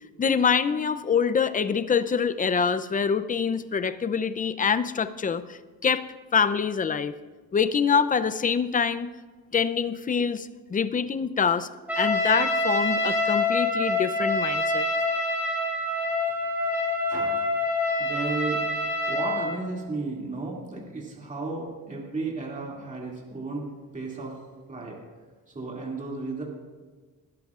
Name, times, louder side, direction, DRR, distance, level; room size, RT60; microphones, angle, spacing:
voice 1, 0.2-6.1 6.3-7.1 7.5-9.1 9.5-11.7 12.0-14.8, left 6 dB, 25° left, 12 dB, 0.5 m, -25 dB
Trumpet, 11.9-19.6, left 2 dB, 5° right, 3.9 m, -26 dB
voice 2, 17.1-17.4 18.0-24.4 24.7-25.0 25.5-26.4, right 3 dB, 20° right, -3 dB, 2.5 m, -34 dB
20.5 x 11.5 x 2.5 m, 1.4 s
cardioid pair, 125°, 34 cm